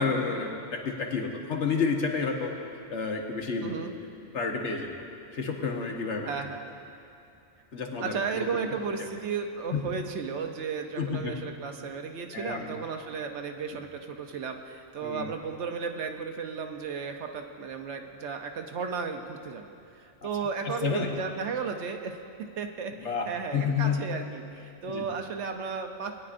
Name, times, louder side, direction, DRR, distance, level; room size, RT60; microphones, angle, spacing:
voice 1, 0.0-2.5 2.9-3.9 4.3-4.9 5.3-6.4 7.7-8.5 9.7-9.8 11.0-11.3 12.3-12.8 15.0-15.3 20.6-21.1 22.9-24.0 24.9-25.1, left 5 dB, 70° left, 1 dB, 1.4 m, -30 dB
voice 2, 3.6-3.9 6.2-6.7 8.0-24.4 24.8-26.2, right 5 dB, 70° right, 5 dB, 1.0 m, -34 dB
20.0 x 9.7 x 2.5 m, 2.7 s
omnidirectional pair, 1.2 m